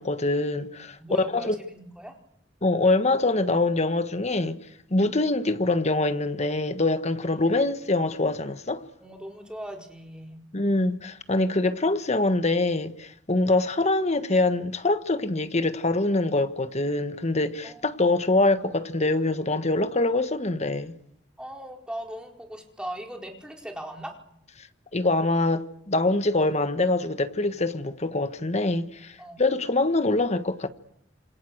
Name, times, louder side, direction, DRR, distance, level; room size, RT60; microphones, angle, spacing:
voice 1, 0.0-1.0 1.3-1.6 2.6-4.6 4.9-8.8 10.5-20.9 24.9-30.7, left 2 dB, 40° left, 1.5 m, -24 dB
voice 2, 1.0-2.1 7.2-7.5 9.0-10.4 17.6-17.8 21.4-24.1 29.2-29.6, equal, 5° right, 4.4 m, -39 dB
27.5 x 25.5 x 8.0 m
head